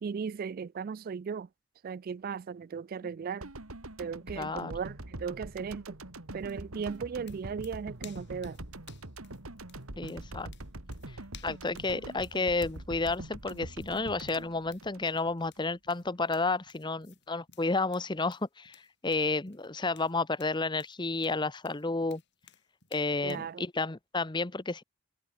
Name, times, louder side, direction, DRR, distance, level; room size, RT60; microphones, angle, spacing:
voice 1, 0.0-1.5 1.8-3.5 4.0-6.0 6.3-8.6 23.2-23.6, right 6 dB, 45° right, 0.3 m, -37 dB
sound 1, 3.4-15.6 15.9-16.0, right 1 dB, 85° right, 3.3 m, -44 dB
voice 2, 4.3-4.7 10.0-10.5 11.4-22.2 22.9-24.8, left 3 dB, 20° left, 0.9 m, -31 dB
sound 2, 6.4-23.5, left 10 dB, 55° left, 5.4 m, -58 dB
head